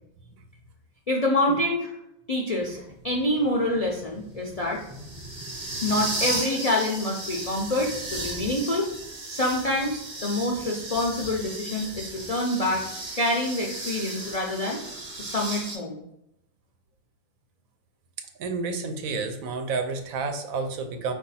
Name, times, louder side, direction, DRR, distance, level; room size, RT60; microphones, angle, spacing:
voice 1, 1.1-1.9 2.3-4.8 5.8-8.9 9.3-12.8 13.1-14.8 15.2-16.0, left 1 dB, 65° left, -2 dB, 0.3 m, -26 dB
sound 1, 2.6-15.8, right 2 dB, 45° right, 0.7 m, -35 dB
voice 2, 18.4-21.1, right 4 dB, 90° right, 6 dB, 1.1 m, -30 dB
4.7 x 2.6 x 4.0 m, 0.82 s
omnidirectional pair, 1.4 m